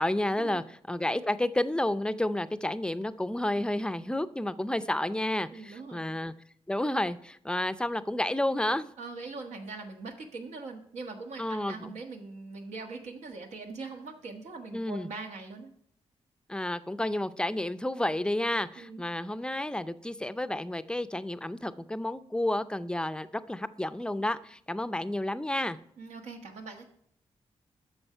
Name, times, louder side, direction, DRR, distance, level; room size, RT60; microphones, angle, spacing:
voice 1, 0.0-6.3 6.7-8.9 11.4-11.9 14.7-15.1 16.5-25.8, left 1 dB, 10° left, 13 dB, 0.4 m, -31 dB
voice 2, 5.5-6.1 9.0-15.7 18.8-19.0 26.0-26.9, right 3 dB, 85° right, 2 dB, 1.4 m, -42 dB
8.8 x 6.4 x 5.5 m, 0.66 s
cardioid pair, 85°, 11 cm